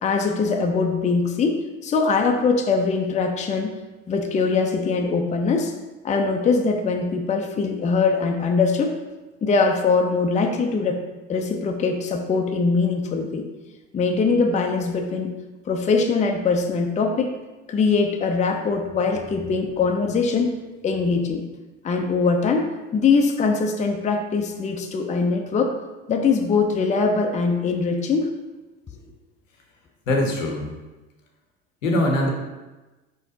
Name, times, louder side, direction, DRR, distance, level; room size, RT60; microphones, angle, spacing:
voice 1, 0.0-3.7 4.1-5.7 6.0-8.9 9.4-11.0 11.3-13.5 13.9-15.3 15.7-17.3 17.7-20.5 20.8-21.4 21.8-25.8 26.1-28.3, left 4 dB, 20° left, 4 dB, 0.5 m, -22 dB
voice 2, 30.1-30.7 31.8-32.3, left 1 dB, 80° left, 2 dB, 0.8 m, -22 dB
4.7 x 4.1 x 2.7 m, 1.2 s
hypercardioid pair, 65°, 38 cm